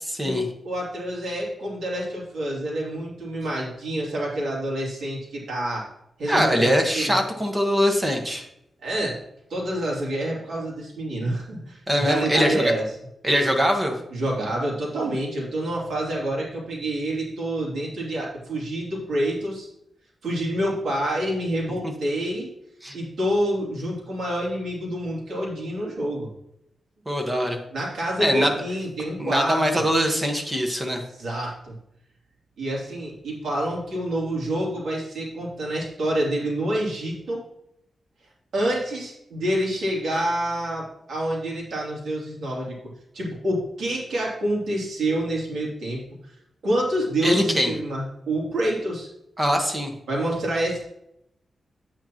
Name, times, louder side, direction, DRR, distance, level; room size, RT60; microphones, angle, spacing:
voice 1, 0.2-5.9 6.2-7.2 8.8-9.2 9.5-12.8 14.1-19.7 20.2-22.5 22.9-26.3 27.7-29.8 31.2-31.7 32.6-37.4 38.5-46.0 46.6-49.1 50.1-50.8, right 1 dB, 85° right, -4 dB, 3.0 m, -27 dB
voice 2, 6.3-8.4 11.9-12.7 13.2-14.0 21.8-21.9 22.8-23.0 27.1-27.6 28.2-28.5 29.2-31.0 47.2-47.7 49.4-49.9, equal, 15° right, 3 dB, 1.2 m, -22 dB
8.8 x 8.7 x 3.0 m, 0.79 s
wide cardioid pair, 150°, 0 cm